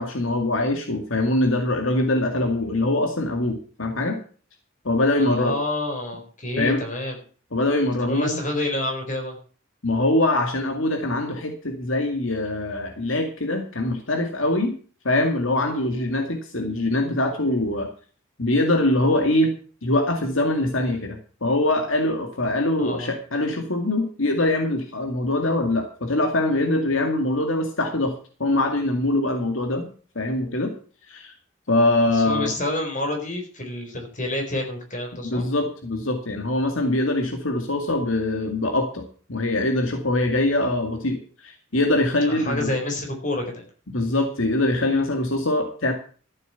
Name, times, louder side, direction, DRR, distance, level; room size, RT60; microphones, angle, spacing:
voice 1, 0.0-4.2 4.8-5.6 6.6-6.8 7.5-8.4 9.8-14.7 15.0-17.9 18.4-19.5 19.8-29.9 30.2-30.7 31.1-31.3 31.7-32.5 35.2-42.7 43.9-45.9, left 2 dB, 75° left, 5 dB, 2.1 m, -23 dB
voice 2, 5.2-7.2 8.0-9.4 22.8-23.1 32.1-35.4 42.3-43.7, left 1 dB, 40° left, 2 dB, 4.4 m, -28 dB
14.0 x 7.7 x 6.9 m, 0.41 s
head